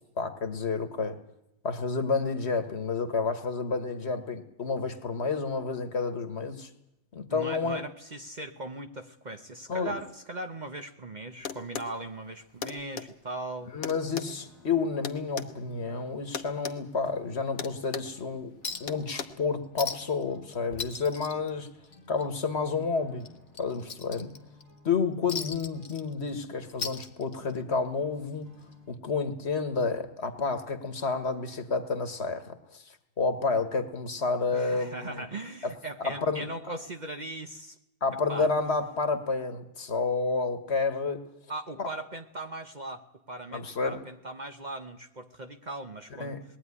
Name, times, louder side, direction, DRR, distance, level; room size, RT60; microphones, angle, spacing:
voice 1, 0.2-1.2 1.6-6.7 7.1-7.8 9.7-10.0 13.7-18.5 18.8-21.7 22.1-24.3 24.8-28.5 28.9-32.8 33.2-35.3 35.6-35.7 36.0-36.5 38.0-41.2 41.8-41.9 43.5-44.0 46.2-46.4, left 4 dB, 55° left, 9 dB, 1.7 m, -30 dB
voice 2, 7.3-13.7 34.5-37.8 38.3-38.5 41.5-46.4, right 2 dB, 35° right, 6 dB, 0.9 m, -39 dB
sound 1, 11.4-11.9 12.6-13.1 13.8-15.5 16.3-16.8 17.1-17.2 17.6-18.2 18.9-19.2, left 7 dB, 80° left, 1.5 m, -36 dB
sound 2, 14.3-29.0, right 1 dB, 70° right, 5.2 m, -56 dB
Chink clink, 18.6-19.0 19.3-19.4 19.8-20.2 20.5-22.2 22.6-22.7 23.2-24.6 25.3-26.4 26.7-27.6 28.7-28.8, left 5 dB, 35° left, 1.0 m, -38 dB
20.5 x 14.0 x 9.8 m, 0.86 s
omnidirectional pair, 1.4 m